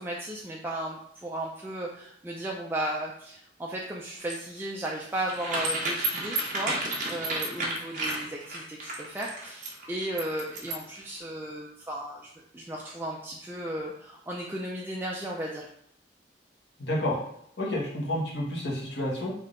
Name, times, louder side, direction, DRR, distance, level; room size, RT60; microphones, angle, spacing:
voice 1, 0.0-6.8 7.1-12.3 12.5-15.7, right 1 dB, 10° right, -2 dB, 0.3 m, -35 dB
sound 1, 4.2-11.0, right 2 dB, 45° right, 0.9 m, -31 dB
voice 2, 16.8-17.2 17.6-19.3, left 1 dB, 70° left, -3 dB, 1.2 m, -29 dB
3.5 x 2.7 x 3.7 m, 0.70 s
head